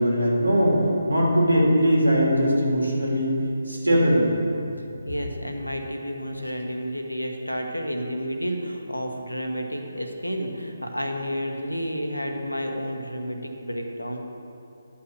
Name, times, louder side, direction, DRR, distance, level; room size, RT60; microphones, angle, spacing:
voice 1, 0.0-3.3 3.7-4.3, equal, 80° right, -3 dB, 2.8 m, -20 dB
voice 2, 5.0-14.2, equal, 90° left, 3 dB, 1.3 m, -30 dB
11.5 x 5.8 x 6.6 m, 2.7 s
figure-of-eight pair, 145°, 0 cm